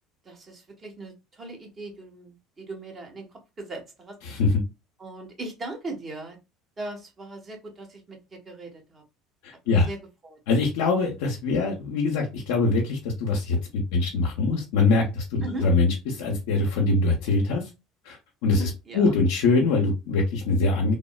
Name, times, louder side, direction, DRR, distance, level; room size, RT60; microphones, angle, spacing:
voice 1, 0.2-4.2 5.0-6.4 6.8-9.0 9.6-10.4 15.4-15.7 18.6-19.1, right 2 dB, 30° right, 1.1 m, -39 dB
voice 2, 4.2-4.6 9.4-9.9 10.5-17.7 18.0-18.2 18.4-21.0, left 3 dB, 85° left, 0.6 m, -23 dB
3.4 x 2.0 x 2.3 m
supercardioid pair, 85°, 0 cm